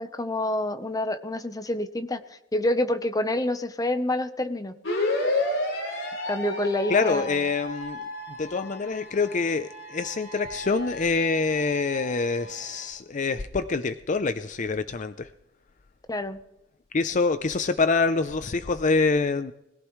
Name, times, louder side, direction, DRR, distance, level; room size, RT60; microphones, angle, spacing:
voice 1, 0.0-2.2 2.5-4.7 6.3-7.4 16.1-16.4, left 1 dB, 20° left, 9 dB, 0.9 m, -27 dB
sound 1, 4.8-12.8, left 2 dB, 80° left, 4.8 m, -32 dB
voice 2, 6.9-8.0 8.4-15.3 16.9-19.5, left 4 dB, 40° left, 11 dB, 0.5 m, -25 dB
21.0 x 15.0 x 3.2 m, 0.87 s
head